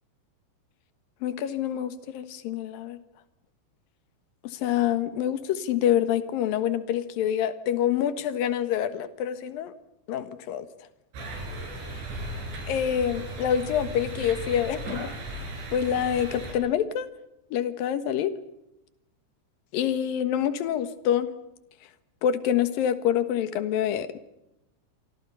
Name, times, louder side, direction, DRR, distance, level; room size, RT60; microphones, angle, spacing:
voice 1, 1.2-3.0 4.4-9.7 10.1-10.7 12.7-15.1 15.7-17.1 17.5-18.3 19.7-21.3 22.2-24.2, left 10 dB, 60° left, 11 dB, 2.8 m, -26 dB
sound 1, 11.1-16.5, right 1 dB, 70° right, 8.7 m, -36 dB
27.5 x 25.0 x 5.6 m, 0.88 s
omnidirectional pair, 5.3 m